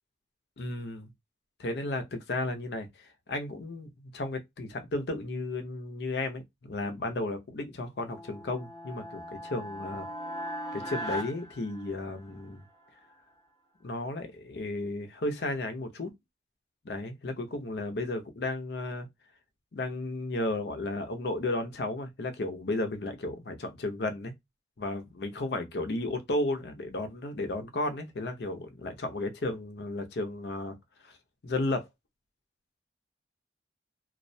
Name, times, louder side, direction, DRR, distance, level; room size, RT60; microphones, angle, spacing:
voice 1, 0.6-1.1 1.6-10.1 10.7-12.6 13.8-16.1 16.8-19.1 19.7-24.3 24.8-30.7 31.0-31.2 31.4-31.9, left 2 dB, 65° left, 0.6 m, -34 dB
sound 1, 8.0-12.4, equal, 20° left, 0.7 m, -39 dB
2.3 x 2.1 x 2.6 m
head